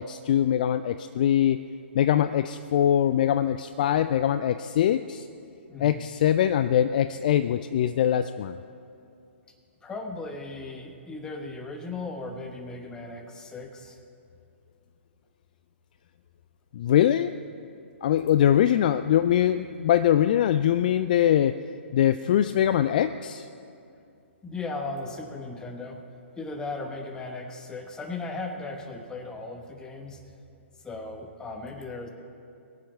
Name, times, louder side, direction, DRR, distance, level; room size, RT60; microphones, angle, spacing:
voice 1, 0.0-1.6 1.9-5.3 5.8-8.6 16.7-17.3 18.0-21.6 21.9-23.5, left 10 dB, 40° left, 12 dB, 0.3 m, -22 dB
voice 2, 5.7-6.0 9.8-14.0 24.4-26.0 26.4-30.2 30.8-32.1, left 3 dB, 10° left, 5 dB, 1.1 m, -37 dB
22.0 x 7.4 x 5.3 m, 2.6 s
figure-of-eight pair, 125°, 7 cm